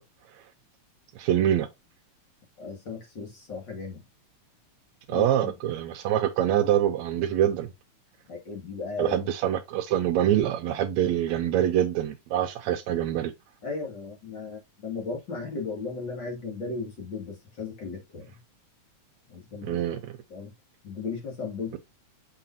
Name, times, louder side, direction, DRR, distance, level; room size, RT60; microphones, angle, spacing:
voice 1, 1.2-1.7 5.1-7.7 9.0-13.3 19.6-20.1, right 11 dB, 75° right, 1.9 m, -25 dB
voice 2, 2.6-4.0 5.1-5.5 8.3-9.3 13.6-18.4 19.3-19.8 20.3-20.5 20.8-21.8, left 4 dB, 40° left, 2.9 m, -36 dB
6.8 x 5.8 x 2.7 m
omnidirectional pair, 3.4 m